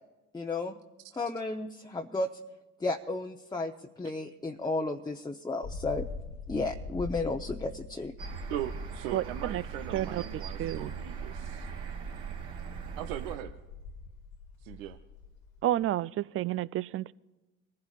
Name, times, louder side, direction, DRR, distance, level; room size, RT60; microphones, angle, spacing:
voice 1, 0.3-0.7 1.2-2.3 2.8-3.7 4.0-6.1 6.5-8.1, left 2 dB, 10° left, 2 dB, 0.8 m, -33 dB
sound 1, 5.6-10.0 10.8-11.0 11.5-15.9, left 4 dB, 60° left, 1.1 m, -44 dB
sound 2, 8.2-13.4, right 6 dB, 55° right, 2.7 m, -39 dB
voice 2, 8.5-11.7 13.0-13.5 14.6-15.0, right 12 dB, 75° right, 7 dB, 0.8 m, -39 dB
voice 3, 9.9-10.2 10.6-10.9 15.6-17.1, right 14 dB, 35° right, 19 dB, 0.4 m, -30 dB
23.0 x 15.0 x 2.4 m, 1.1 s
hypercardioid pair, 65°, 40 cm